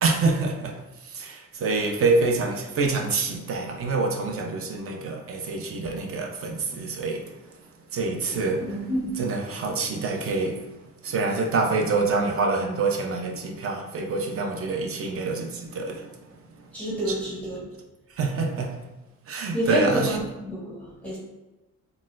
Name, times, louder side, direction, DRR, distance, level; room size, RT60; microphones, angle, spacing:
voice 1, 0.0-7.4 7.9-8.8 9.2-10.6 11.0-16.1 17.1-17.2 18.1-18.8 19.3-20.2, right 3 dB, 50° right, 3 dB, 0.6 m, -26 dB
voice 2, 8.6-9.1 16.7-17.7 19.5-21.2, equal, 5° left, -6 dB, 0.7 m, -28 dB
3.9 x 2.2 x 2.5 m, 1.1 s
cardioid pair, 90°, 30 cm